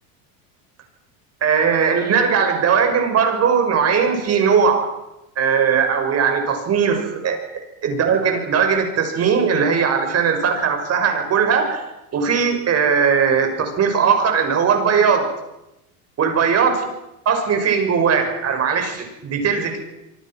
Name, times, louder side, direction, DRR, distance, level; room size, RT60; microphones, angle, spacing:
voice 1, 1.4-4.9 5.4-7.4 7.8-11.8 12.1-15.3 16.2-16.8 17.2-19.8, right 6 dB, 35° right, 5 dB, 6.6 m, -19 dB
26.5 x 24.5 x 6.3 m, 0.90 s
supercardioid pair, 130°, 43 cm